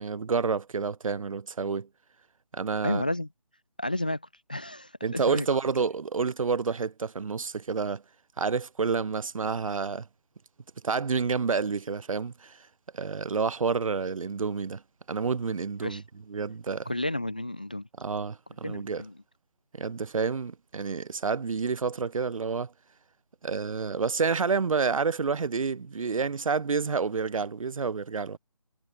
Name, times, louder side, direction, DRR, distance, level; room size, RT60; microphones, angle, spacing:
voice 1, 0.0-1.9 2.5-3.0 5.0-8.0 8.4-10.1 10.8-12.6 12.9-14.8 15.1-16.0 16.3-16.9 18.0-19.0 19.8-22.7 23.4-28.4, right 5 dB, 65° right, 0.6 m, -29 dB
voice 2, 2.8-3.3 3.8-4.2 4.5-5.5 15.8-16.0 16.9-17.9 18.6-19.2, left 1 dB, 15° left, 0.4 m, -31 dB
figure-of-eight pair, 165°, 18 cm